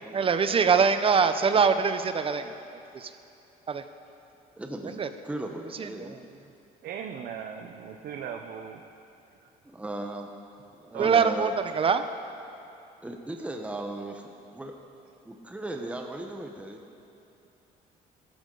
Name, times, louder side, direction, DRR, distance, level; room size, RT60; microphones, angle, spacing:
voice 1, 0.1-2.5 2.9-3.1 3.7-3.8 5.0-5.1 5.8-6.2 11.0-12.1, right 6 dB, 35° right, 10 dB, 0.7 m, -23 dB
voice 2, 4.6-6.2 9.6-10.3 10.7-11.5 13.0-14.2 14.5-14.7 15.2-16.8, right 1 dB, 5° right, 3 dB, 0.9 m, -37 dB
voice 3, 6.8-8.9 10.9-11.2, right 8 dB, 65° right, 4 dB, 0.7 m, -37 dB
16.0 x 13.0 x 3.9 m, 2.9 s
cardioid pair, 110°, 17 cm